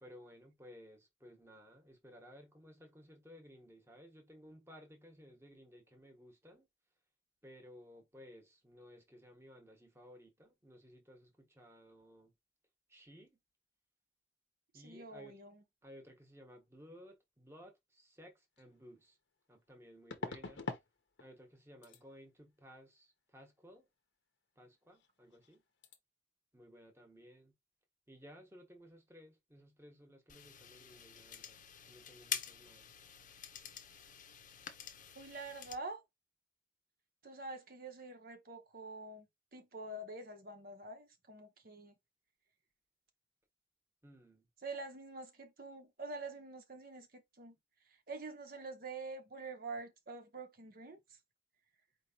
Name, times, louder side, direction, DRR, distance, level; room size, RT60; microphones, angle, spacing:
voice 1, 0.0-6.6 7.4-12.3 12.9-13.4 14.7-15.3 15.8-19.2 19.5-20.7 21.2-23.9 24.6-25.6 26.5-27.5 28.1-32.9 44.0-44.5, equal, 15° right, 1.3 m, -57 dB
voice 2, 14.7-15.6 35.1-36.0 37.2-39.3 39.5-41.9 44.6-47.6 47.9-51.2, right 3 dB, 55° right, 1.1 m, -46 dB
sound 1, 18.6-18.7 20.1-20.9 21.2-21.6 21.8-22.0 24.9-25.1 25.3-25.6 25.8-26.0, left 3 dB, 85° left, 0.9 m, -43 dB
sound 2, 30.3-35.8, left 9 dB, 45° left, 0.8 m, -47 dB
4.7 x 3.0 x 2.9 m
head